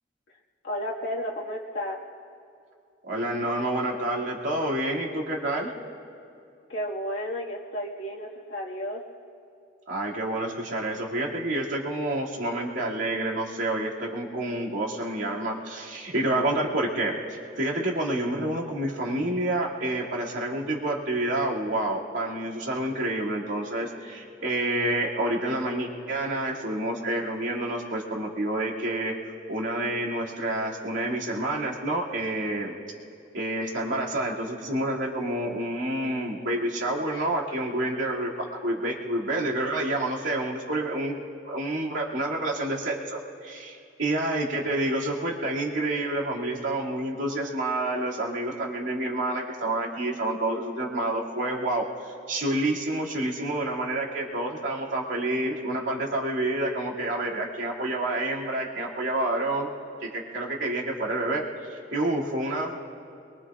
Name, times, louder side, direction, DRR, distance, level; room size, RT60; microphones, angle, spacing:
voice 1, 0.6-2.0 6.7-9.0, equal, 75° left, -4 dB, 1.9 m, -32 dB
voice 2, 3.0-5.7 9.9-17.1 17.6-29.1 29.5-32.7 33.3-41.2 41.5-59.7 60.0-61.4 61.7-62.8, right 1 dB, 90° right, -4 dB, 2.5 m, -28 dB
23.5 x 23.0 x 2.5 m, 2.5 s
head